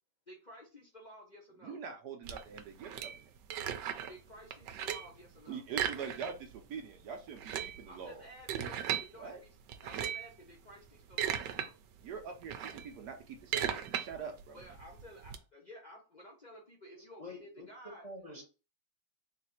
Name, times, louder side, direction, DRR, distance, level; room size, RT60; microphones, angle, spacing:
voice 1, 0.3-1.8 4.1-5.6 7.9-9.5 9.8-11.7 14.5-18.0, equal, 45° left, 0.6 m, -53 dB
voice 2, 1.6-3.3 5.5-8.2 9.1-9.4 12.0-14.6, right 6 dB, 70° right, 1.1 m, -44 dB
sound 1, 2.2-4.2 4.5-5.2 5.7-6.6 6.8-6.9 7.3-9.1 9.7-10.3 10.9-11.7 12.0-15.4, right 9 dB, 85° right, 1.2 m, -37 dB
voice 3, 16.9-17.7 18.0-18.4, left 2 dB, 25° left, 1.0 m, -47 dB
3.9 x 2.6 x 4.3 m
omnidirectional pair, 1.9 m